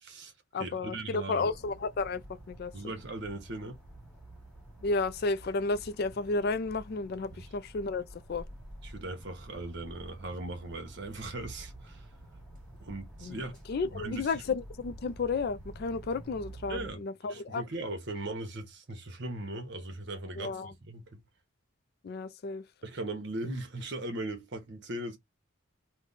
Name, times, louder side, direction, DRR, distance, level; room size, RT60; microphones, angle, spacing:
voice 1, 0.0-1.5 2.7-3.8 7.3-7.4 8.8-12.1 12.8-13.5 13.9-14.4 16.7-17.0 17.3-21.2 22.8-25.2, right 2 dB, 55° right, 1.0 m, -39 dB
voice 2, 0.5-2.7 4.8-8.5 13.2-13.4 13.7-17.6 20.4-20.7 22.0-22.6, left 3 dB, 45° left, 0.3 m, -32 dB
sound 1, 1.5-16.9, right 1 dB, 5° left, 1.5 m, -49 dB
3.2 x 2.2 x 3.9 m
head